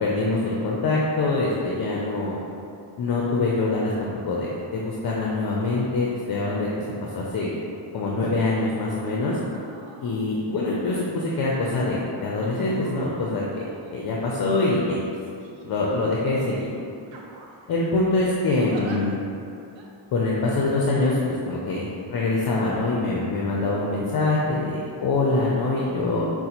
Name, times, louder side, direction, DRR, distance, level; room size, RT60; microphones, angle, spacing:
voice 1, 0.0-2.4 3.0-6.7 7.1-7.5 7.9-9.4 10.0-13.6 13.9-15.0 15.6-16.7 17.7-19.2 20.1-21.2 21.5-26.3, left 2 dB, 50° left, -3 dB, 0.5 m, -24 dB
sound 1, 8.7-9.0 9.4-10.1 10.9-11.4 12.4-14.5 15.3-16.0 16.4-16.6 17.1-17.7 18.6-19.0 19.8-19.9, right 3 dB, 75° right, 0.6 m, -44 dB
5.0 x 2.1 x 2.9 m, 2.5 s
cardioid pair, 90°, 46 cm